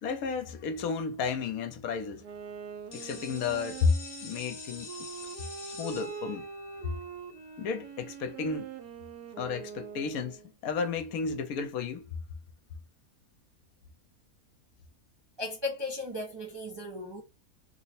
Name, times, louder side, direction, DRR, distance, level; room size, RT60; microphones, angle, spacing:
voice 1, 0.0-2.2 2.9-3.9 4.2-4.9 5.8-6.5 6.8-6.9 7.6-8.7 9.4-12.1, left 5 dB, 75° left, 1.1 m, -32 dB
Wind instrument woodwind instrument, 2.2-10.5, right 7 dB, 85° right, 1.2 m, -43 dB
sound 1, 2.9-8.6, left 5 dB, 55° left, 0.8 m, -47 dB
voice 2, 15.4-17.2, left 2 dB, 40° right, 0.3 m, -36 dB
3.0 x 2.1 x 4.1 m
omnidirectional pair, 1.6 m